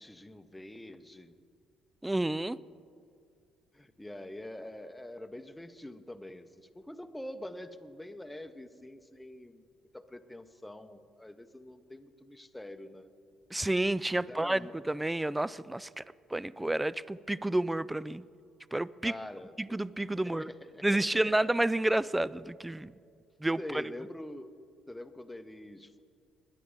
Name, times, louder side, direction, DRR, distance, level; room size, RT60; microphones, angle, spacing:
voice 1, 0.0-1.4 3.7-9.6 9.9-13.1 14.2-14.9 19.0-19.8 20.2-21.4 23.6-26.0, left 1 dB, 10° left, 10 dB, 0.8 m, -45 dB
voice 2, 2.0-2.6 13.5-16.0 16.3-18.2 18.7-19.1 19.6-20.5 20.8-22.9 23.4-23.6, right 1 dB, 10° right, 20 dB, 0.3 m, -30 dB
21.0 x 10.0 x 3.7 m, 2.3 s
hypercardioid pair, 50°, 0 cm